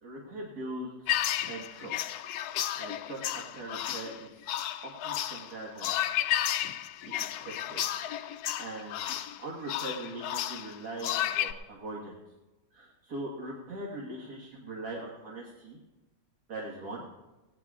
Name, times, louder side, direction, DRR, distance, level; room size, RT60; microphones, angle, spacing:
voice 1, 0.0-1.2 1.5-4.5 4.8-6.0 7.1-12.2 12.7-15.8 16.5-17.0, right 2 dB, 65° right, -3 dB, 2.1 m, -41 dB
sound 1, 1.1-11.5, left 12 dB, 70° left, 1.0 m, -33 dB
18.5 x 16.5 x 2.4 m, 1.1 s
omnidirectional pair, 1.8 m